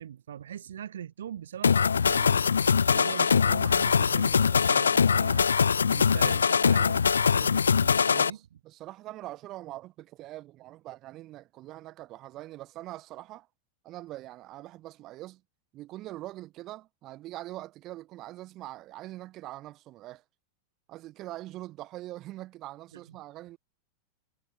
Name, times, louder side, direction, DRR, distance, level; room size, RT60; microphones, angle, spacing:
voice 1, 0.0-1.8 2.1-2.5 2.8-5.5 5.9-8.4 22.9-23.2, right 9 dB, 65° right, 3.9 m, -41 dB
sound 1, 1.6-8.3, left 6 dB, 70° left, 0.6 m, -23 dB
voice 2, 8.1-13.5 13.8-15.4 15.7-20.2 20.9-23.6, right 16 dB, 35° right, 2.5 m, -43 dB
figure-of-eight pair, 90°, 0 cm